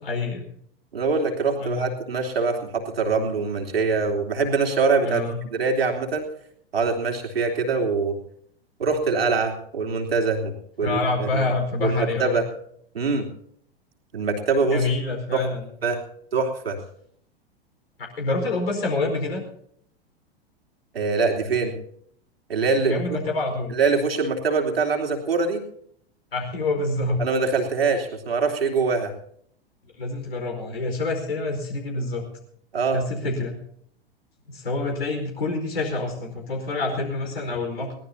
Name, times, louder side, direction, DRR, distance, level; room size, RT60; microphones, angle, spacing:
voice 1, 0.0-0.4 1.6-1.9 5.0-5.4 10.8-12.4 14.6-15.7 18.0-19.5 22.8-23.8 26.3-27.2 30.0-32.2 32.9-33.6 34.5-38.0, left 2 dB, 70° left, 3 dB, 4.8 m, -27 dB
voice 2, 0.9-5.2 5.5-6.2 6.7-8.2 8.8-11.5 11.8-12.5 12.9-13.3 14.1-14.9 15.3-15.5 15.8-16.0 16.3-16.8 20.9-21.7 22.5-23.0 23.7-25.6 27.2-29.1 32.7-33.0, right 4 dB, 70° right, 2 dB, 3.3 m, -23 dB
22.0 x 17.5 x 2.8 m, 0.65 s
figure-of-eight pair, 95°, 31 cm